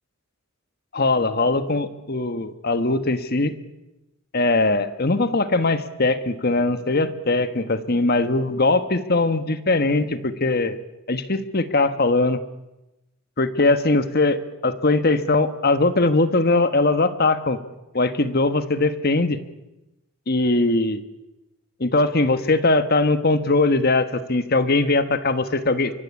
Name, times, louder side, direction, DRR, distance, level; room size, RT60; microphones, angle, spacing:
voice 1, 0.9-3.5 4.3-10.8 11.1-12.4 13.4-17.6 17.9-19.4 20.3-21.0 21.8-25.9, left 2 dB, 45° left, 11 dB, 1.4 m, -20 dB
24.5 x 23.0 x 8.6 m, 0.97 s
head